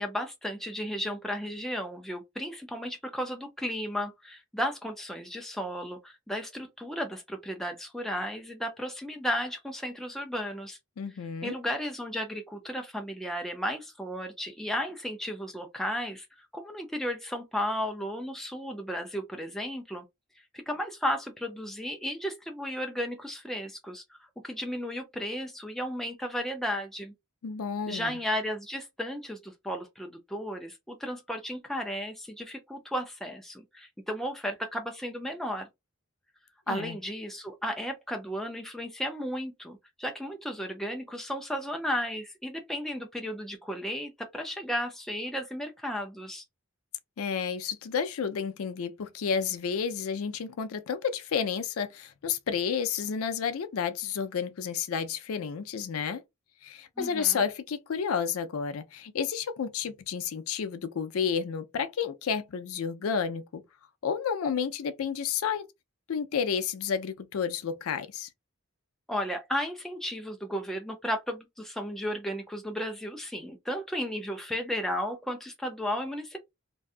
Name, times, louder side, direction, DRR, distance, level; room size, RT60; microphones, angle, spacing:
voice 1, 0.0-10.8 11.4-20.0 20.7-27.1 27.9-35.7 36.7-46.4 57.0-57.4 69.1-76.4, equal, ahead, 0.3 m, -34 dB
voice 2, 11.0-11.6 27.4-28.2 36.7-37.0 47.2-56.2 56.6-63.6 64.0-65.6 66.1-68.3, left 7 dB, 80° left, 0.4 m, -31 dB
2.6 x 2.2 x 2.4 m
head